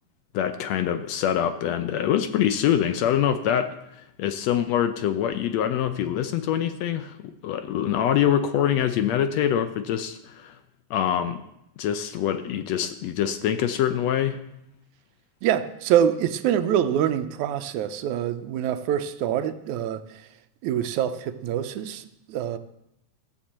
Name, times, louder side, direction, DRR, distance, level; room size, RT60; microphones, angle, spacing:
voice 1, 0.3-10.6 10.9-11.4 11.8-14.4, left 10 dB, 75° left, 9 dB, 1.7 m, -25 dB
voice 2, 15.4-20.3 20.6-22.6, right 10 dB, 85° right, 10 dB, 2.1 m, -25 dB
14.5 x 7.1 x 7.4 m, 0.82 s
omnidirectional pair, 3.4 m